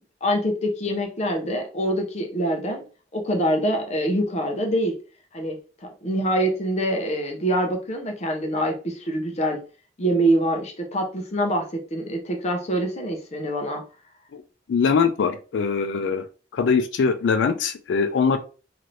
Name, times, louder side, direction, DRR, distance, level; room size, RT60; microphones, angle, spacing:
voice 1, 0.2-2.8 3.1-5.0 5.3-5.6 6.0-9.6 10.0-13.8, right 1 dB, 40° left, 2 dB, 0.6 m, -25 dB
voice 2, 14.7-16.2 16.5-18.4, left 5 dB, 75° left, 10 dB, 0.4 m, -22 dB
2.8 x 2.5 x 3.0 m, 0.36 s
head